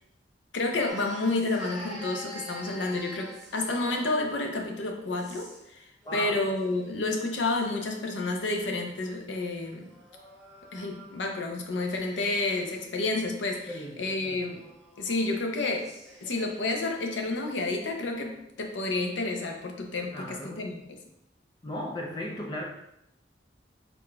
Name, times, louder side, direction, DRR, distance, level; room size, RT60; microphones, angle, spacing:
voice 1, 0.5-5.5 5.8-9.9 10.7-14.7 15.0-15.9 16.2-21.0, left 2 dB, 90° left, 3 dB, 0.6 m, -30 dB
sound 1, 0.9-4.3 5.1-5.7 6.0-7.7 8.7-11.5 11.9-17.5, equal, ahead, 0.9 m, -47 dB
voice 2, 6.1-6.4 13.7-14.4 20.1-20.7 21.6-22.6, left 1 dB, 25° left, -1 dB, 0.4 m, -36 dB
3.8 x 3.8 x 2.2 m, 0.81 s
head